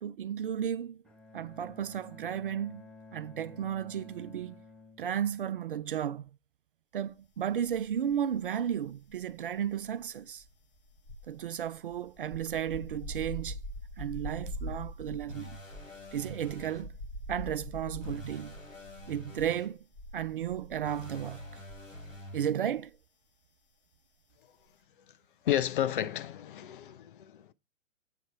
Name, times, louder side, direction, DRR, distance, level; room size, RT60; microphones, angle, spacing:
voice 1, 0.0-1.0 1.3-2.8 3.1-4.6 5.0-6.3 6.9-10.4 11.3-13.6 14.0-15.6 16.1-16.9 17.3-18.6 19.1-19.8 20.1-21.6 22.3-22.9, right 9 dB, 45° right, 0.4 m, -34 dB
Bowed string instrument, 1.0-6.1, left 3 dB, ahead, 0.9 m, -53 dB
sound 1, 7.6-8.5 8.7-22.3 22.5-22.8, equal, 25° left, 1.9 m, -44 dB
sound 2, 15.3-16.8 18.0-19.7 20.8-22.5, left 1 dB, 80° left, 4.3 m, -46 dB
voice 2, 25.4-27.5, left 11 dB, 40° left, 0.6 m, -31 dB
8.2 x 4.0 x 5.6 m
figure-of-eight pair, 125°, 39 cm